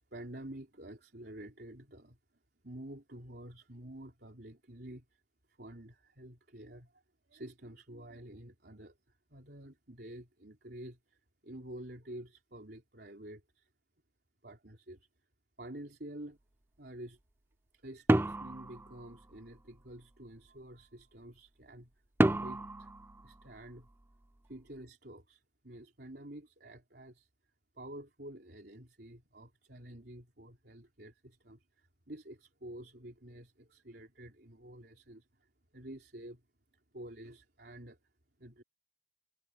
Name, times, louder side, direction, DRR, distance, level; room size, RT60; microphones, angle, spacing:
voice 1, 0.1-2.2 2.6-5.2 5.5-7.0 7.3-8.9 9.3-13.7 14.4-15.1 15.6-16.4 16.8-17.2 17.7-21.9 22.3-22.9 23.2-23.9 24.5-27.3 27.8-36.4 36.9-38.0 38.4-38.6, right 1 dB, 65° right, 3.8 m, -49 dB
sound 1, 18.1-19.6 22.2-24.0, right 1 dB, 15° right, 0.5 m, -31 dB
head